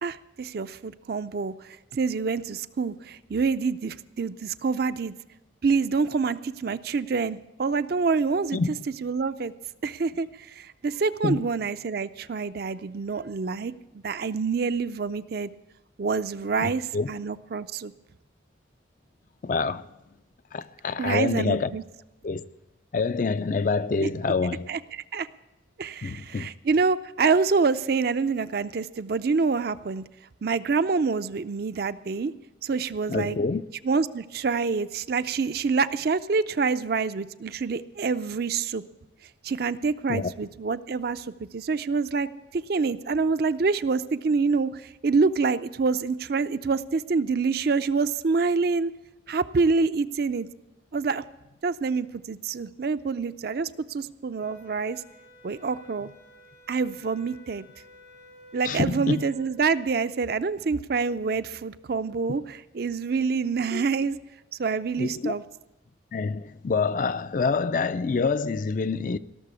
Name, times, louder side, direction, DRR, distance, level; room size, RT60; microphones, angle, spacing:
voice 1, 0.0-5.1 5.6-8.6 9.0-9.5 9.8-13.7 14.0-15.5 16.0-17.9 21.0-21.8 24.0-24.1 24.7-25.3 25.8-30.0 30.4-32.3 32.6-33.4 33.8-38.8 39.4-48.9 49.3-50.5 50.9-51.2 51.6-55.0 55.4-56.1 56.7-57.6 58.5-64.2 64.6-65.4, right 4 dB, 50° right, 0.4 m, -26 dB
voice 2, 16.6-17.1 19.4-19.9 20.5-21.8 22.2-22.4 22.9-24.7 26.0-26.5 33.1-33.6 40.1-40.3 58.6-59.2 63.7-63.9 65.0-65.3 66.1-69.2, left 4 dB, 40° left, 0.4 m, -26 dB
sound 1, 54.4-59.5, left 1 dB, 80° left, 3.3 m, -52 dB
17.0 x 6.8 x 8.2 m
head